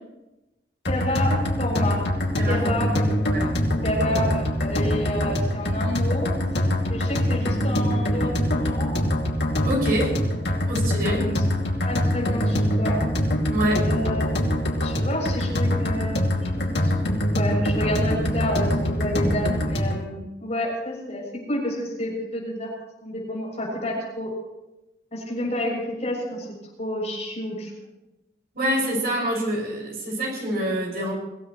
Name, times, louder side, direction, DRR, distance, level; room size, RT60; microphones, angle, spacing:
sound 1, 0.9-20.1, left 1 dB, 80° left, 2.5 m, -24 dB
voice 1, 0.9-2.0 2.5-3.2 3.8-6.3 6.9-9.0 10.2-10.8 11.2-11.4 11.8-13.1 13.9-22.7 23.0-24.3 25.1-27.7, left 1 dB, 40° left, -3 dB, 7.6 m, -30 dB
voice 2, 3.3-3.7 9.6-10.2 10.7-11.3 13.5-13.9 28.5-31.1, equal, 55° right, -2 dB, 6.3 m, -26 dB
24.0 x 16.5 x 3.2 m, 1.0 s
head